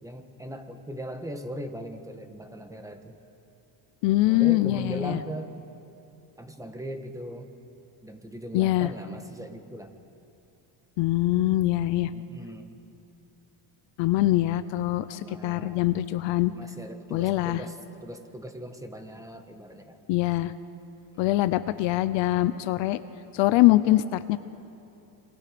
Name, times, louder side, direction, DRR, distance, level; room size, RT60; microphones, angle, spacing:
voice 1, 0.0-3.1 4.2-5.5 6.4-7.5 8.0-9.9 12.1-12.8 15.1-15.8 16.5-17.8 18.0-20.0, equal, 5° right, 6 dB, 1.5 m, -39 dB
voice 2, 4.0-5.2 8.5-8.9 11.0-12.1 14.0-16.5 17.1-17.6 20.1-20.5 21.2-23.0 23.3-24.4, left 16 dB, 70° left, 13 dB, 0.9 m, -23 dB
26.5 x 25.0 x 5.2 m, 2.8 s
cardioid pair, 120°, 46 cm